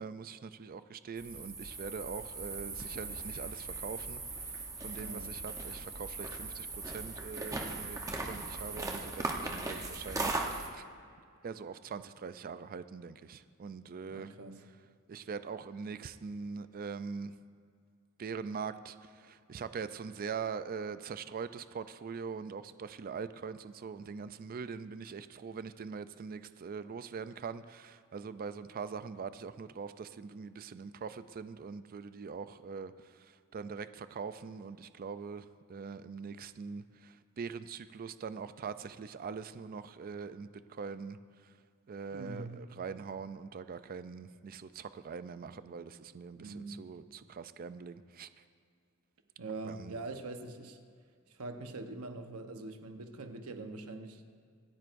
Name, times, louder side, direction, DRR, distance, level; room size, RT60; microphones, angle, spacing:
voice 1, 0.0-4.5 4.8-10.8 11.4-14.3 15.1-17.3 18.2-32.9 33.2-41.2 41.9-48.3 49.7-50.0, right 5 dB, 40° right, 13 dB, 0.4 m, -42 dB
sound 1, 1.2-10.7, right 3 dB, 15° right, 0.9 m, -39 dB
voice 2, 5.0-5.4 14.1-14.6 42.1-42.6 46.3-46.8 49.4-50.8 51.3-54.2, right 3 dB, 85° right, 6 dB, 1.0 m, -43 dB
26.0 x 9.1 x 2.6 m, 2.2 s
head